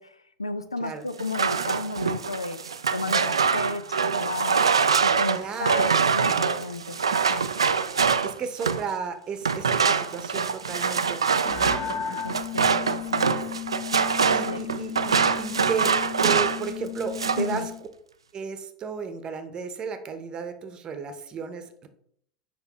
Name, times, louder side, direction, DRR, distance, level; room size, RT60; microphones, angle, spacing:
voice 1, 0.0-2.6 2.9-4.6 5.0-7.7 12.0-13.4 14.5-14.6 17.4-17.7, left 3 dB, 85° left, 12 dB, 0.4 m, -33 dB
sound 1, 1.2-8.9 9.4-16.7 17.0-17.5, right 6 dB, 80° right, 0.3 m, -24 dB
voice 2, 5.2-6.1 8.2-12.2 14.3-15.9 16.2-17.6 18.3-21.9, right 6 dB, 30° right, 8 dB, 0.8 m, -34 dB
sound 2, 11.4-17.8, left 9 dB, 60° left, 1.5 m, -35 dB
6.9 x 5.1 x 3.1 m, 0.68 s
figure-of-eight pair, 80°, 3 cm